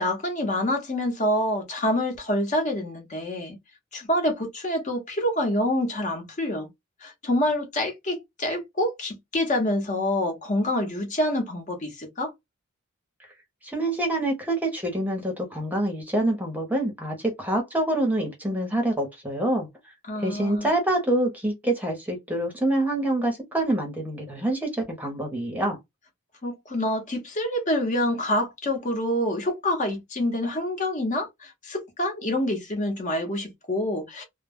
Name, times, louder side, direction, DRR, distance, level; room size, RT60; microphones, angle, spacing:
voice 1, 0.0-3.6 3.9-6.7 7.0-12.3 20.1-20.7 26.4-34.2, left 1 dB, 35° left, 0.8 m, -27 dB
voice 2, 13.6-19.7 20.2-25.8, right 1 dB, 10° right, 0.8 m, -26 dB
2.2 x 2.1 x 3.4 m
head